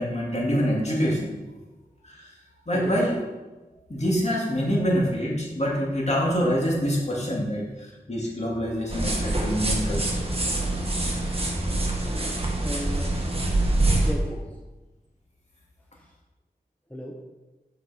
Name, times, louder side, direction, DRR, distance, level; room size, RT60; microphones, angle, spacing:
voice 1, 0.0-1.3 2.0-2.3 2.7-3.2 3.9-10.1, equal, 45° left, -4 dB, 2.6 m, -25 dB
sound 1, 8.9-14.1, right 2 dB, 35° right, 1.7 m, -25 dB
voice 2, 12.6-13.1 13.7-14.6 15.9-16.1 16.9-17.2, equal, 10° left, -1 dB, 1.0 m, -36 dB
7.9 x 6.0 x 4.4 m, 1.2 s
wide cardioid pair, 45°, 16 cm